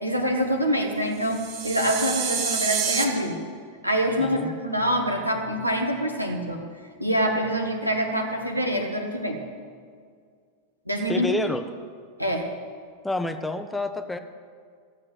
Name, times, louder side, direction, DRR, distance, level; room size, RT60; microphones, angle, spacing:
voice 1, 0.0-3.4 3.8-6.6 7.0-9.4 10.8-11.3 12.2-12.5, equal, 90° right, 2 dB, 1.6 m, -25 dB
sound 1, 1.2-3.0, right 6 dB, 45° right, 1.8 m, -28 dB
voice 2, 4.2-4.5 11.1-11.6 13.0-14.2, left 2 dB, 5° left, 8 dB, 0.7 m, -28 dB
15.0 x 7.6 x 7.9 m, 2.1 s
figure-of-eight pair, 90°, 0 cm